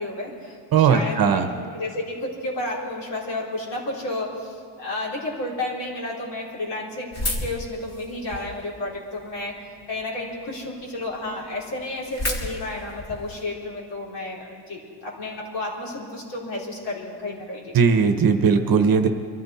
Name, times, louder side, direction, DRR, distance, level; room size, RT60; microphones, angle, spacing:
voice 1, 0.0-1.4 1.7-9.6 9.9-17.7, left 2 dB, 60° left, -4 dB, 4.1 m, -31 dB
voice 2, 0.7-1.5 17.7-19.1, right 6 dB, 45° right, 8 dB, 1.0 m, -18 dB
sound 1, 7.1-8.6 9.2-9.9 10.3-10.4 10.6-10.7 11.1-11.2 11.4-13.4, left 1 dB, 30° left, 2.2 m, -31 dB
24.0 x 14.0 x 4.3 m, 2.2 s
cardioid pair, 145°, 48 cm